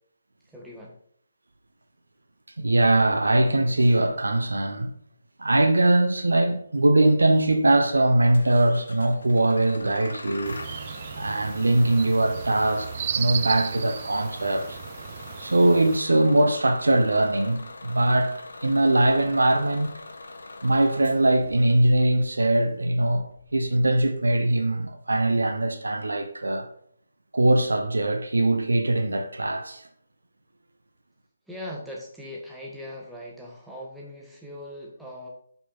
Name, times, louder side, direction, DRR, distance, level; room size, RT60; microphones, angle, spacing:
voice 1, 0.5-1.0 31.5-35.3, left 1 dB, 5° right, 1.7 m, -40 dB
voice 2, 2.6-4.9 5.4-10.6 11.2-14.8 15.4-20.0 20.6-26.7 27.3-29.8, right 1 dB, 70° right, 1.0 m, -21 dB
Bus / Engine starting, 8.3-24.5, left 2 dB, 65° left, 1.2 m, -43 dB
sound 1, 10.4-16.0, right 9 dB, 35° right, 0.3 m, -35 dB
7.4 x 6.1 x 4.2 m
figure-of-eight pair, 145°, 0 cm